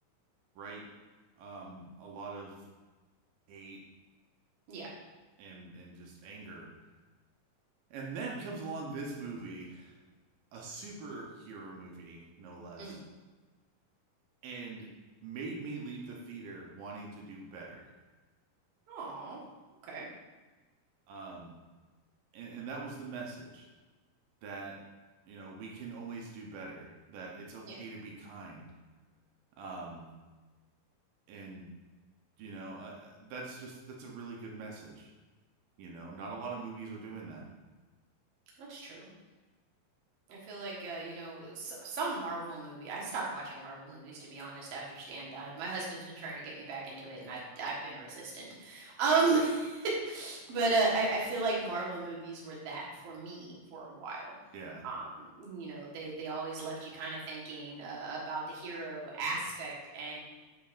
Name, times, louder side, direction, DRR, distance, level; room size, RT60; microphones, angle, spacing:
voice 1, 1.4-2.6 3.5-3.8 5.4-6.7 7.9-10.0 10.5-13.0 14.4-14.9 15.2-17.9 21.1-21.5 22.3-23.7 24.4-24.8 25.3-28.7 29.6-30.1 31.3-31.7 32.4-35.1 35.8-37.5 54.5-54.9, right 3 dB, 80° right, -1 dB, 2.6 m, -43 dB
voice 2, 18.9-19.4 19.9-20.1 27.6-27.7 38.6-39.1 40.3-54.4 54.8-60.2, right 3 dB, 55° right, -4 dB, 2.1 m, -35 dB
7.9 x 6.7 x 2.5 m, 1.2 s
omnidirectional pair, 4.0 m